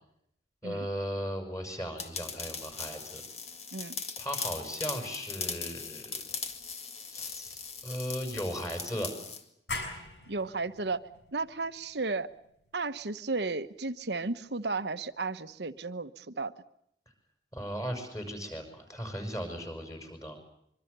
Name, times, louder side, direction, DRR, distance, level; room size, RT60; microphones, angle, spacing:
voice 1, 0.6-3.2 4.2-6.2 7.1-9.1 17.5-20.4, equal, 20° left, 5 dB, 6.4 m, -37 dB
sound 1, 2.0-9.4, left 5 dB, 35° left, 2.1 m, -39 dB
sound 2, 9.7-15.1, left 2 dB, 75° left, 6.2 m, -44 dB
voice 2, 10.3-11.0 11.3-12.3 12.7-16.5, right 3 dB, 70° right, 10 dB, 1.1 m, -34 dB
25.0 x 24.0 x 6.8 m, 0.75 s
head